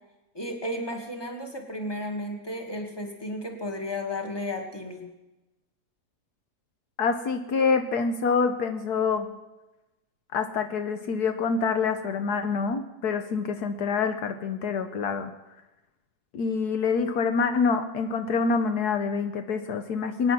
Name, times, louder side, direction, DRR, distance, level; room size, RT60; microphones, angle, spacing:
voice 1, 0.3-5.1, left 1 dB, 15° left, 2 dB, 2.1 m, -33 dB
voice 2, 7.0-9.3 10.3-15.3 16.3-20.3, left 5 dB, 75° left, 7 dB, 1.4 m, -26 dB
23.5 x 9.6 x 6.0 m, 1.0 s
omnidirectional pair, 1.8 m